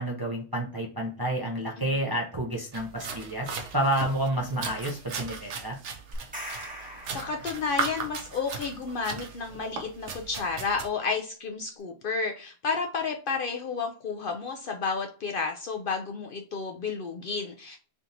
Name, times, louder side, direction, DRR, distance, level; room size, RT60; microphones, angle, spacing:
voice 1, 0.0-5.8, right 1 dB, 30° right, -1 dB, 0.5 m, -30 dB
voice 2, 1.8-2.1 7.1-17.8, left 4 dB, 60° left, 3 dB, 0.6 m, -31 dB
sound 1, 2.7-10.9, right 5 dB, 75° right, 1.0 m, -37 dB
sound 2, 6.1-8.1, equal, 5° right, 1.0 m, -41 dB
3.4 x 2.7 x 3.8 m, 0.38 s
omnidirectional pair, 1.2 m